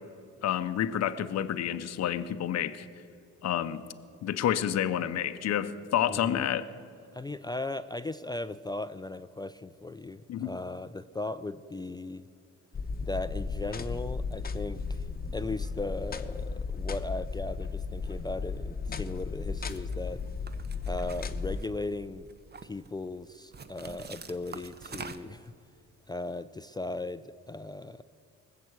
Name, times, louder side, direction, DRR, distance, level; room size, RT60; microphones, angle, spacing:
voice 1, 0.4-2.9 3.4-3.8 4.2-6.6 10.3-10.5, left 10 dB, 60° left, 11 dB, 0.7 m, -29 dB
voice 2, 6.1-6.5 7.1-12.3 13.0-20.2 20.9-22.3 22.6-25.5 26.1-28.0, left 2 dB, 15° left, 13 dB, 0.3 m, -37 dB
sound 1, 12.7-21.6, left 4 dB, 30° left, 0.8 m, -35 dB
sound 2, 19.6-19.9 20.5-21.9 22.3-22.9 23.5-25.5, right 5 dB, 35° right, 0.8 m, -45 dB
19.5 x 7.5 x 8.1 m, 2.5 s
cardioid pair, 90°, 30 cm